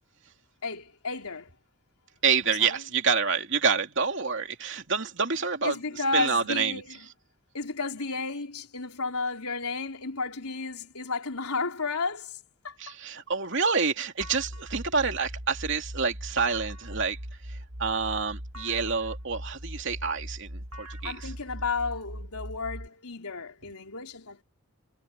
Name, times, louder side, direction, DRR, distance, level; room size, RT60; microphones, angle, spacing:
voice 1, 0.6-1.5 2.6-2.8 5.6-7.1 7.5-12.4 12.6-12.9 21.0-24.4, left 3 dB, 85° left, 4.0 m, -32 dB
voice 2, 2.2-5.8 6.1-6.8 12.8-17.2 17.5-21.3, right 5 dB, 55° right, 3.0 m, -28 dB
sound 1, 14.2-22.9, equal, 75° right, 4.2 m, -40 dB
head